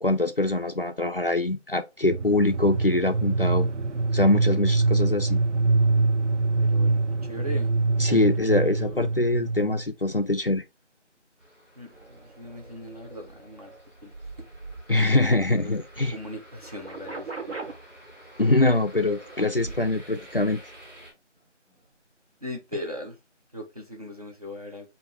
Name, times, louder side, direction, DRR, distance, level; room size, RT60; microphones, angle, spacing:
voice 1, 0.0-3.7 4.1-5.4 8.0-10.6 14.9-16.2 18.4-20.6, left 2 dB, 50° left, 0.4 m, -23 dB
sound 1, 2.0-9.9, right 3 dB, 75° right, 0.6 m, -24 dB
voice 2, 6.7-7.7 8.1-9.0 11.8-13.7 14.0-14.1 15.5-15.7 16.1-17.5 19.8-19.9 22.4-23.2 23.5-24.9, left 1 dB, 30° right, 1.0 m, -39 dB
sound 2, 11.4-21.1, equal, 10° right, 2.9 m, -50 dB
sound 3, 11.9-16.1 16.5-17.7 19.4-20.0 20.4-20.5, right 3 dB, 60° right, 1.6 m, -41 dB
5.0 x 2.7 x 3.2 m
figure-of-eight pair, 175°, 36 cm